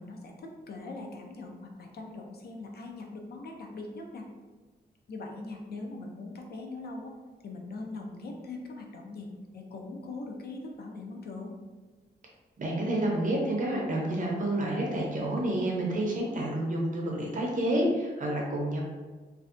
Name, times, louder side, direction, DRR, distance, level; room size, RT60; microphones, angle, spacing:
voice 1, 0.0-4.3 5.1-7.2 7.4-9.3 9.5-11.5, left 2 dB, 60° left, 1 dB, 0.4 m, -41 dB
voice 2, 12.6-18.8, right 1 dB, 45° right, -2 dB, 0.5 m, -29 dB
2.5 x 2.1 x 2.4 m, 1.4 s
wide cardioid pair, 160°, 18 cm